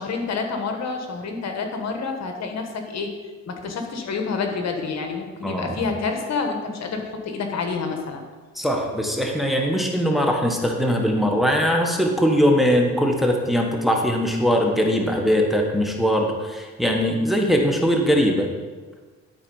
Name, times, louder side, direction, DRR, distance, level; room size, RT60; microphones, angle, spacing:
voice 1, 0.0-3.1 3.5-8.2, left 4 dB, 60° left, 4 dB, 1.4 m, -28 dB
voice 2, 5.4-5.7 8.5-18.5, equal, ahead, 1 dB, 1.3 m, -21 dB
12.0 x 4.3 x 5.4 m, 1.4 s
cardioid pair, 90°, 30 cm